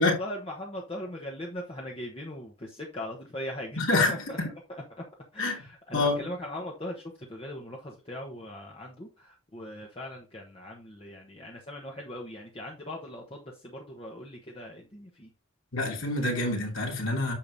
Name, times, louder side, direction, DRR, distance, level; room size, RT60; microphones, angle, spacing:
voice 1, 0.0-4.4 5.3-7.0 7.3-15.3, left 1 dB, 25° left, 1.0 m, -39 dB
voice 2, 3.8-4.2 5.4-5.6 5.9-6.3 15.7-17.3, left 2 dB, 65° left, 2.7 m, -26 dB
8.7 x 6.6 x 2.7 m
head